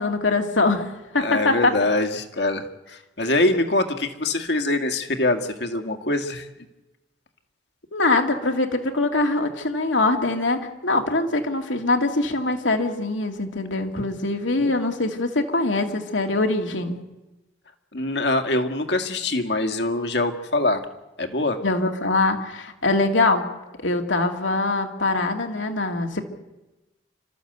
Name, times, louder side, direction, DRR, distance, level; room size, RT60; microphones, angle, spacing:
voice 1, 0.0-1.7 7.9-17.0 21.6-23.4 23.8-26.2, left 2 dB, 85° left, 4 dB, 2.5 m, -23 dB
voice 2, 1.2-6.5 17.9-20.8 21.2-21.6, left 2 dB, 70° left, 5 dB, 2.0 m, -24 dB
29.5 x 13.5 x 8.1 m, 1.0 s
head